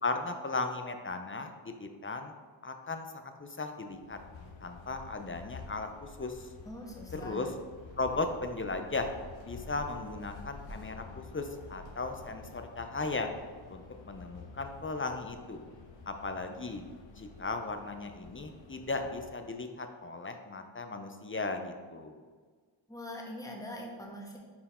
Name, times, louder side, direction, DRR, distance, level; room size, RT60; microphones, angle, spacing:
voice 1, 0.0-2.3 2.6-3.1 3.4-4.2 4.6-5.9 6.2-6.4 7.1-7.5 8.0-9.1 9.4-13.3 13.7-15.7 16.1-16.8 17.2-22.1, left 3 dB, 25° left, 6 dB, 0.5 m, -36 dB
sound 1, 3.9-19.6, left 3 dB, 65° left, 0.8 m, -50 dB
voice 2, 6.6-7.5 22.9-24.4, left 1 dB, 5° left, -2 dB, 1.2 m, -43 dB
5.7 x 4.5 x 4.2 m, 1.5 s
wide cardioid pair, 95°, 50 cm